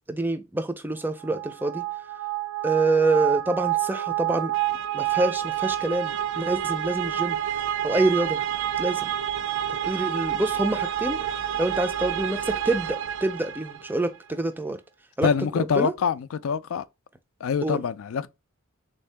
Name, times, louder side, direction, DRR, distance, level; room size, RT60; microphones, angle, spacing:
voice 1, 0.1-1.8 2.6-4.5 4.9-7.4 7.8-8.4 8.8-9.1 9.8-11.2 11.6-14.8 15.2-15.3 15.6-15.9 17.6-17.8, right 2 dB, 10° right, 0.4 m, -26 dB
sound 1, 1.2-14.0, right 11 dB, 80° right, 0.4 m, -28 dB
voice 2, 15.2-16.8 17.4-18.3, left 6 dB, 70° left, 0.3 m, -25 dB
3.6 x 2.7 x 3.3 m
head